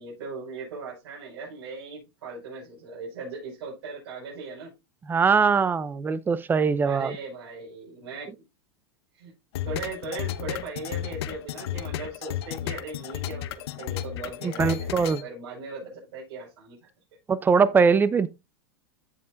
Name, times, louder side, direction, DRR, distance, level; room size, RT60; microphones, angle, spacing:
voice 1, 0.0-4.7 6.9-8.3 9.1-9.3 9.6-13.5 13.8-16.8, right 3 dB, 70° right, 5.3 m, -38 dB
voice 2, 5.1-7.1 14.4-15.2 17.3-18.3, right 5 dB, 15° right, 0.6 m, -21 dB
sound 1, 9.5-15.2, left 11 dB, 70° left, 0.9 m, -33 dB
15.0 x 5.4 x 2.6 m
supercardioid pair, 140°, 14 cm